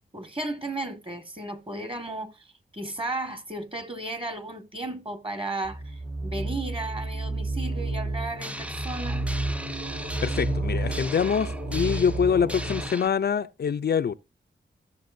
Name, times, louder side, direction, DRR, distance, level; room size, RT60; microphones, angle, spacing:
voice 1, 0.1-2.5 2.7-9.3, right 2 dB, 25° right, 1.7 m, -34 dB
sound 1, 5.6-12.9, right 2 dB, 60° right, 2.5 m, -31 dB
sound 2, 8.4-13.1, right 1 dB, 5° right, 0.5 m, -38 dB
voice 2, 10.2-14.1, left 7 dB, 55° left, 0.5 m, -25 dB
14.5 x 6.8 x 2.6 m
cardioid pair, 70°, 20 cm